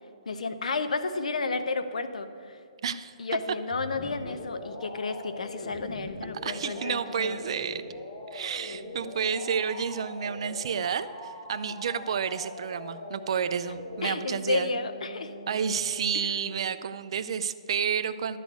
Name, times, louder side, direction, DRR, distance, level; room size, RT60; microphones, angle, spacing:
voice 1, 0.3-2.6 3.2-7.4 14.0-15.3 16.1-16.3, left 3 dB, 85° left, 10 dB, 0.8 m, -32 dB
voice 2, 2.8-3.1 6.4-7.8 8.3-14.7 15.5-18.4, right 7 dB, 50° right, 12 dB, 0.5 m, -30 dB
sound 1, 3.7-16.5, left 1 dB, 30° left, 1.5 m, -42 dB
11.5 x 4.2 x 8.1 m, 2.4 s
hypercardioid pair, 165°, 4 cm